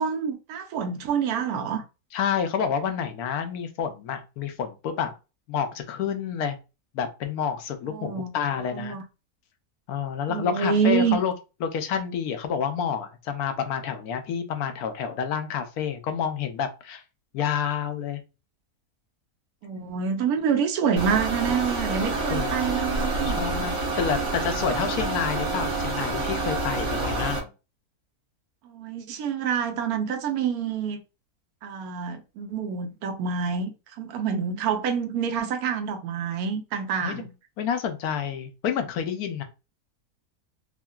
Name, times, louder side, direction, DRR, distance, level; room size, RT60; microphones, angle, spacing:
voice 1, 0.0-1.8 7.9-8.3 8.6-9.0 10.3-11.2 19.6-23.4 28.6-31.0 31.6-37.3, right 7 dB, 75° right, 1.0 m, -27 dB
voice 2, 2.1-5.1 5.5-6.6 6.9-9.0 9.9-11.3 11.6-17.0 17.3-18.2 22.3-22.6 23.3-27.5 37.0-37.3 37.6-39.4, left 7 dB, 80° left, 1.1 m, -29 dB
sound 1, 21.0-27.4, right 3 dB, 55° right, 1.3 m, -28 dB
3.7 x 2.1 x 2.3 m
omnidirectional pair, 1.6 m